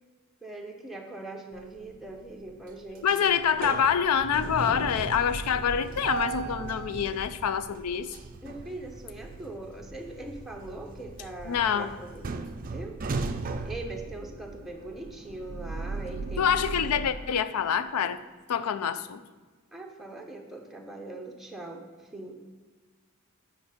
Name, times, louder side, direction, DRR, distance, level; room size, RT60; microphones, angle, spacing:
voice 1, 0.4-3.3 7.7-7.8 8.4-12.2 12.7-13.0 13.6-16.5 19.7-22.4, right 2 dB, ahead, 1 dB, 0.8 m, -41 dB
sound 1, 1.6-2.1 2.5-17.1, right 4 dB, 40° right, 0.4 m, -37 dB
voice 2, 3.0-8.2 11.5-11.9 16.4-18.2 18.5-19.2, left 8 dB, 85° left, 13 dB, 0.4 m, -26 dB
8.0 x 4.7 x 5.0 m, 1.4 s
head